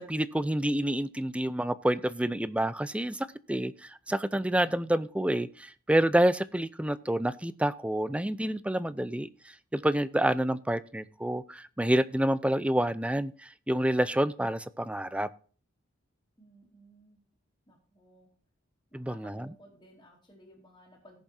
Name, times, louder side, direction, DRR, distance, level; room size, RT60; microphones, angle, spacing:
voice 1, 0.0-9.3 9.7-15.3 18.9-19.5, right 1 dB, 5° right, 16 dB, 0.5 m, -28 dB
voice 2, 16.4-17.2 17.7-18.3 18.9-21.2, equal, 20° left, -5 dB, 3.3 m, -56 dB
18.0 x 7.1 x 2.7 m, 0.42 s
head